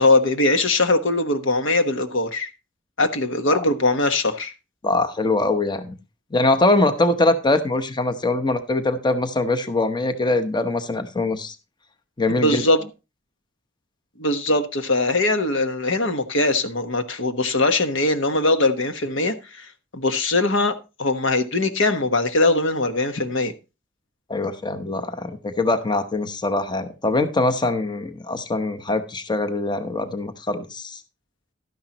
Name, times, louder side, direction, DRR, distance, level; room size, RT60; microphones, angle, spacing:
voice 1, 0.0-2.5 3.0-4.5 12.3-12.8 14.2-23.5, left 2 dB, 75° left, 1.3 m, -21 dB
voice 2, 4.8-6.0 6.3-11.6 12.2-12.6 24.3-31.0, left 2 dB, 25° left, 0.9 m, -22 dB
12.0 x 10.5 x 2.9 m
head